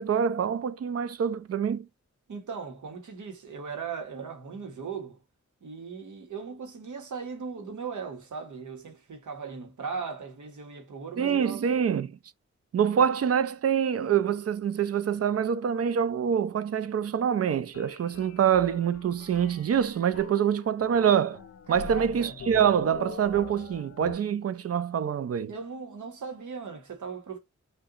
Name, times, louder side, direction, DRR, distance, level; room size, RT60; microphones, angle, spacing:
voice 1, 0.0-1.9 11.2-12.1 12.7-21.4 21.7-25.5, right 8 dB, 55° right, 0.4 m, -25 dB
voice 2, 2.3-5.2 5.6-11.7 12.9-13.0 21.7-22.3 25.5-27.4, right 5 dB, 85° right, 0.9 m, -38 dB
sound 1, 17.7-24.1, left 6 dB, 50° left, 0.4 m, -44 dB
2.7 x 2.2 x 3.6 m
cardioid pair, 50°, 29 cm